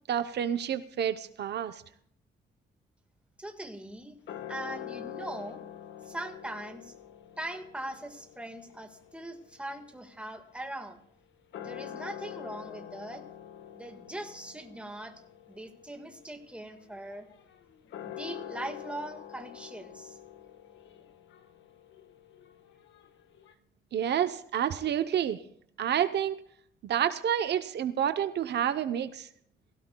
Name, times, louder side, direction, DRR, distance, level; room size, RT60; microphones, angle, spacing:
voice 1, 0.1-1.8 23.9-25.4 25.8-26.4 26.8-29.3, right 9 dB, 65° right, 11 dB, 0.7 m, -29 dB
voice 2, 3.4-4.2 4.5-5.6 6.0-6.9 7.4-11.0 11.6-13.2 13.7-15.2 15.5-17.3 18.0-20.2, right 1 dB, 5° right, 5 dB, 1.5 m, -41 dB
sound 1, 4.3-10.9 11.4-23.5, left 10 dB, 80° left, 1.3 m, -46 dB
16.5 x 16.5 x 2.2 m, 0.68 s
cardioid pair, 135°, 19 cm